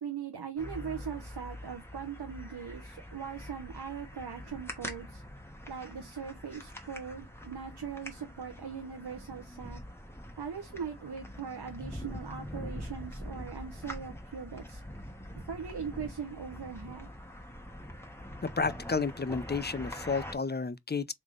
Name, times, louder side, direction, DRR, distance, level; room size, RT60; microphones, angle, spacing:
voice 1, 0.0-5.2 5.7-9.8 10.4-14.8 15.3-17.1, right 7 dB, 85° right, 0.8 m, -40 dB
sound 1, 0.6-20.3, equal, 5° left, 1.3 m, -44 dB
voice 2, 18.4-21.1, left 4 dB, 25° left, 0.4 m, -31 dB
3.5 x 3.3 x 3.7 m
wide cardioid pair, 40°, 39 cm